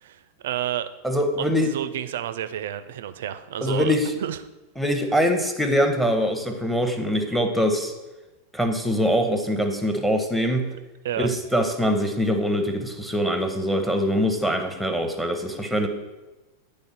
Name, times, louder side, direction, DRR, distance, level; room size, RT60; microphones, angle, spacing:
voice 1, 0.0-0.9 1.4-3.9 4.2-4.4 10.7-10.8 11.0-11.3, right 11 dB, 60° right, 12 dB, 0.4 m, -30 dB
voice 2, 1.0-1.7 3.6-4.2 4.8-7.9 8.5-10.7 11.2-15.9, equal, ahead, 5 dB, 0.7 m, -23 dB
9.8 x 3.3 x 4.2 m, 1.1 s
figure-of-eight pair, 90°, 0 cm